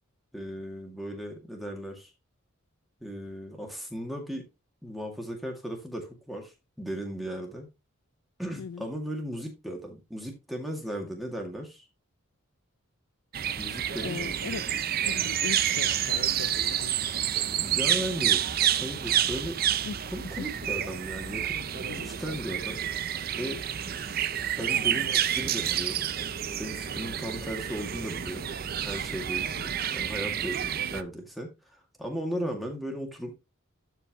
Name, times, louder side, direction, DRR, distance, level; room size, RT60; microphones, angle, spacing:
voice 1, 0.3-2.1 3.0-4.5 4.8-7.7 8.4-11.9 13.5-14.4 17.6-18.4 18.7-19.6 20.1-22.8 23.4-23.6 24.5-26.0 26.6-28.5 28.8-33.3, equal, ahead, 2.0 m, -36 dB
sound 1, 13.3-31.0, right 10 dB, 45° right, 0.5 m, -29 dB
voice 2, 14.0-14.7 15.1-17.0 19.9-20.1 20.4-20.5 21.8-22.1 29.6-29.7 32.3-32.6, left 6 dB, 75° left, 0.4 m, -39 dB
12.5 x 4.6 x 3.0 m
head